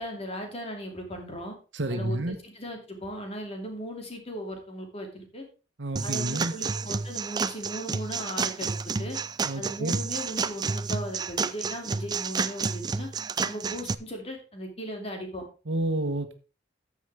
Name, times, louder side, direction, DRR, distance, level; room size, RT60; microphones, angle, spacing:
voice 1, 0.0-1.5 1.9-5.4 6.0-9.2 9.5-13.1 13.4-15.4, equal, 35° left, 2.7 m, -37 dB
voice 2, 1.7-2.4 5.8-6.6 9.4-10.0 15.7-16.3, right 1 dB, 75° right, 1.3 m, -29 dB
sound 1, 6.0-13.9, right 5 dB, 20° right, 0.4 m, -30 dB
13.0 x 7.4 x 3.5 m
head